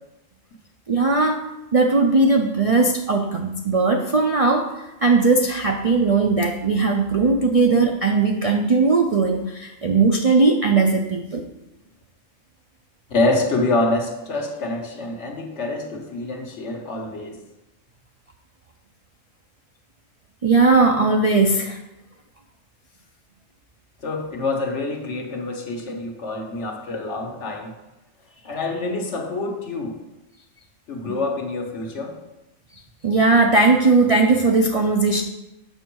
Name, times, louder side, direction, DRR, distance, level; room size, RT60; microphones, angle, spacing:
voice 1, 0.9-11.4 20.4-21.8 33.0-35.2, right 3 dB, 50° right, 2 dB, 0.4 m, -18 dB
voice 2, 13.1-17.4 24.0-27.7 28.4-30.0 30.9-32.1, left 2 dB, 65° left, 2 dB, 1.4 m, -26 dB
7.7 x 6.2 x 4.6 m, 0.96 s
omnidirectional pair, 1.3 m